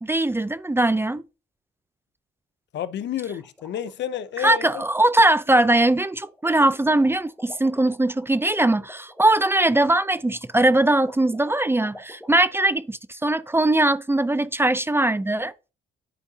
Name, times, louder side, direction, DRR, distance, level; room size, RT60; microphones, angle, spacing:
voice 1, 0.0-1.2 4.4-15.5, right 1 dB, 10° right, 0.5 m, -21 dB
voice 2, 2.7-4.8, left 10 dB, 65° left, 0.6 m, -30 dB
sound 1, 3.3-12.4, equal, 5° left, 2.1 m, -46 dB
11.5 x 4.6 x 2.8 m
cardioid pair, 90°, 20 cm